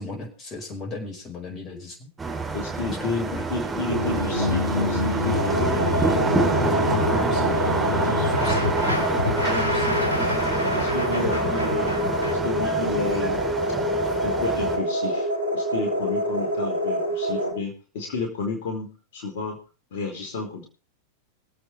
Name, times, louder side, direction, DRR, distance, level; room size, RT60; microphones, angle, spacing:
voice 1, 0.0-2.1 3.0-3.7 6.6-10.5 14.0-14.1, left 2 dB, 30° left, 3 dB, 5.3 m, -36 dB
sound 1, 2.2-14.8, right 4 dB, 15° right, 3.6 m, -27 dB
voice 2, 2.5-6.4 10.6-13.4 14.2-19.6 19.9-20.6, left 4 dB, 55° left, 1 dB, 4.5 m, -31 dB
sound 2, 3.9-12.4, left 3 dB, 80° left, 1.0 m, -28 dB
sound 3, 5.3-17.5, equal, 80° right, 3.7 m, -26 dB
25.0 x 8.5 x 3.4 m, 0.36 s
figure-of-eight pair, 90°, 0 cm